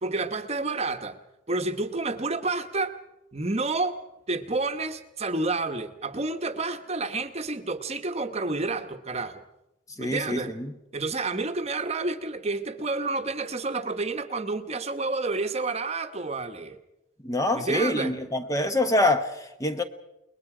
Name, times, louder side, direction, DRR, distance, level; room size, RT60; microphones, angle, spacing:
voice 1, 0.0-1.2 1.5-2.9 3.3-4.0 4.3-9.4 10.0-10.5 10.9-16.8 17.5-18.1, right 3 dB, 30° right, 1.1 m, -29 dB
voice 2, 10.0-10.7 17.2-19.8, left 1 dB, 15° left, 0.9 m, -25 dB
29.0 x 20.5 x 4.9 m
head